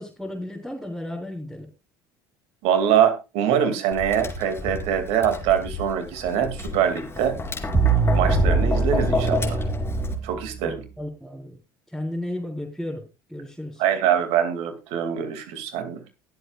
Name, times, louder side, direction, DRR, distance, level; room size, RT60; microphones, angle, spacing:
voice 1, 0.0-1.7 10.6-11.6 11.9-13.8, left 1 dB, ahead, -4 dB, 4.5 m, -34 dB
voice 2, 2.6-7.4 8.1-9.6 10.2-10.8 13.8-16.0, right 9 dB, 65° right, 8 dB, 2.5 m, -23 dB
Tap, 3.9-10.1, left 2 dB, 20° left, 3.5 m, -28 dB
sound 1, 7.7-10.8, right 5 dB, 30° right, 1.2 m, -24 dB
21.5 x 7.8 x 2.4 m, 0.27 s
hypercardioid pair, 70°, 12 cm